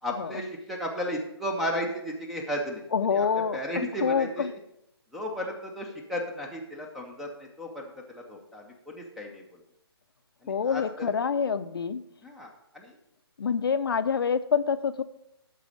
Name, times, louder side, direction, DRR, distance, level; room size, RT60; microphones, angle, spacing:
voice 1, 0.0-2.8 3.1-4.5 5.1-9.6 10.4-11.1 12.2-13.0, equal, ahead, 0 dB, 0.5 m, -34 dB
voice 2, 2.9-3.6 4.0-4.5 10.5-12.0 13.4-15.0, left 6 dB, 60° left, 12 dB, 0.6 m, -26 dB
12.5 x 4.1 x 6.4 m, 0.82 s
hypercardioid pair, 160°, 14 cm